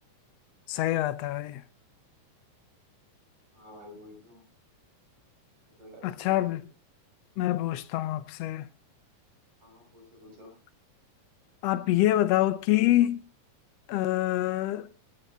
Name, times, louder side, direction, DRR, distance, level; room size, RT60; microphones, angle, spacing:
voice 1, 0.7-1.6 6.0-6.6 7.4-8.7 11.6-13.2 13.9-14.9, left 14 dB, 90° left, 1.4 m, -26 dB
voice 2, 3.5-4.4 5.7-6.6 9.6-10.5, left 2 dB, 60° right, 7.1 m, -50 dB
21.5 x 8.8 x 3.5 m
omnidirectional pair, 3.8 m